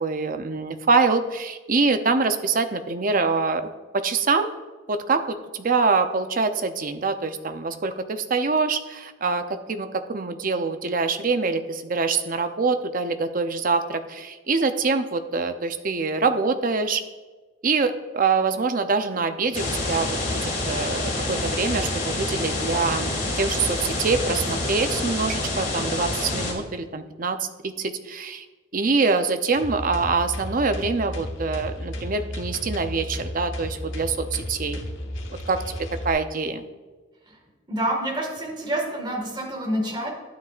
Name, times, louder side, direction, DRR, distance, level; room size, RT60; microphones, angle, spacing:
voice 1, 0.0-3.7 3.9-4.5 4.9-17.0 17.6-28.5 28.7-34.8 35.5-35.6 36.0-36.6, right 4 dB, 45° right, 8 dB, 0.6 m, -25 dB
sound 1, 19.5-26.5, left 2 dB, 45° left, 2.1 m, -27 dB
sound 2, 29.5-36.1, left 1 dB, 85° left, 1.3 m, -33 dB
voice 2, 37.7-40.1, right 1 dB, 25° right, 0 dB, 1.8 m, -27 dB
12.5 x 9.4 x 2.5 m, 1.3 s
head